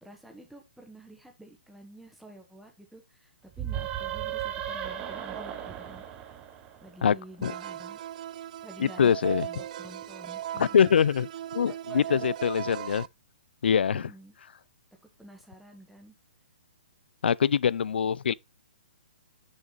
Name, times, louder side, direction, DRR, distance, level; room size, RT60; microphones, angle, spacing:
voice 1, 0.0-6.0 6.8-8.0 8.6-10.9 11.6-12.3 12.8-12.9 13.9-14.3 15.2-16.1, right 1 dB, ahead, 1.3 m, -49 dB
sound 1, 3.5-7.1, right 10 dB, 20° right, 0.8 m, -35 dB
sound 2, 7.4-13.1, right 11 dB, 45° right, 0.3 m, -38 dB
voice 2, 8.8-9.5 10.6-11.3 11.5-13.0 13.6-14.1 17.2-18.3, left 7 dB, 80° left, 0.4 m, -23 dB
6.4 x 5.1 x 3.9 m
hypercardioid pair, 155°, 6 cm